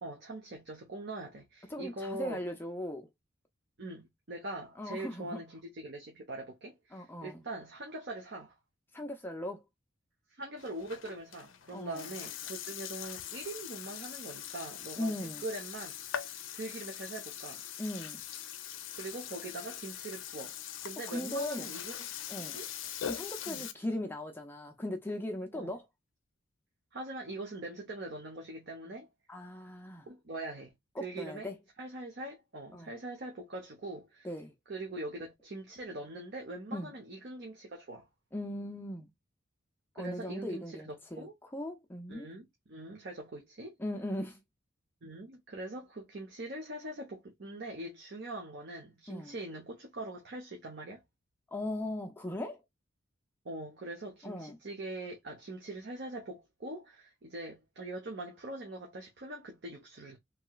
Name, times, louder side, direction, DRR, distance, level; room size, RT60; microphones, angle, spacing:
voice 1, 0.0-2.4 3.8-8.5 10.3-15.9 16.5-17.7 19.0-20.5 20.8-22.0 22.4-22.7 23.5-23.7 25.5-25.7 26.9-29.1 30.0-30.7 31.0-31.5 31.8-34.3 34.7-38.1 40.0-41.3 42.1-43.8 45.0-51.0 53.4-60.2, right 2 dB, 55° right, 0.8 m, -42 dB
voice 2, 1.7-3.1 4.8-5.4 6.9-7.4 8.9-9.6 11.7-12.1 15.0-15.4 17.8-18.2 21.1-21.7 22.3-22.6 23.0-25.8 29.3-30.1 31.0-31.6 32.7-32.9 34.2-34.5 36.7-36.9 38.3-39.1 40.0-42.3 43.8-44.4 49.1-49.4 51.5-52.6 54.2-54.6, left 1 dB, 10° left, 0.4 m, -38 dB
Burping eructation, 10.6-23.7, left 10 dB, 70° left, 0.5 m, -42 dB
3.0 x 2.9 x 2.3 m
head